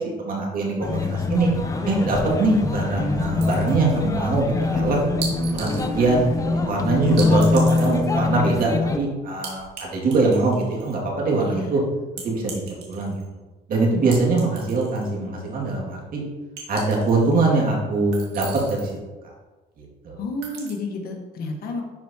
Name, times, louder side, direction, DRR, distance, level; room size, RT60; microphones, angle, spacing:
voice 1, 0.2-1.5 1.8-5.0 5.5-11.8 12.2-12.6 12.9-13.2 13.7-16.2 16.7-19.0 19.8-20.2, right 3 dB, 55° right, -3 dB, 2.3 m, -22 dB
sound 1, 0.8-9.0, left 3 dB, 20° left, 0.7 m, -24 dB
sound 2, 3.4-4.0 5.2-5.9 7.2-8.0 9.4-9.8 10.1-11.0 12.2-13.2 14.1-15.1 15.5-15.6 16.6-17.3 18.1-18.9 20.4-20.7, right 5 dB, 80° right, 2.1 m, -37 dB
voice 2, 20.2-21.8, left 2 dB, 65° left, 2 dB, 1.3 m, -31 dB
11.5 x 4.6 x 2.9 m, 1.2 s
cardioid pair, 110°, 17 cm